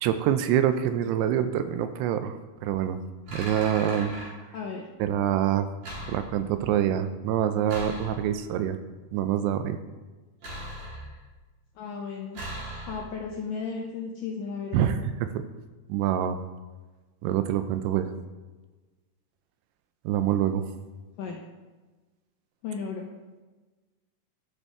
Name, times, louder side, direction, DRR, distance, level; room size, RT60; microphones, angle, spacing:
voice 1, 0.0-3.0 3.3-4.2 5.0-5.7 6.1-8.8 9.1-9.8 14.7-15.4 15.9-16.4 17.2-18.1 20.1-20.7, right 10 dB, 85° right, 10 dB, 2.6 m, -26 dB
sound 1, 3.3-4.3 5.8-6.6 7.7-8.5 10.4-11.4 12.3-13.3, equal, 45° right, 3.4 m, -39 dB
voice 2, 4.5-4.9 11.8-12.4 12.9-15.0 21.2-21.4 22.6-23.1, left 5 dB, 85° left, -1 dB, 1.9 m, -34 dB
12.5 x 5.3 x 3.6 m, 1.2 s
omnidirectional pair, 4.8 m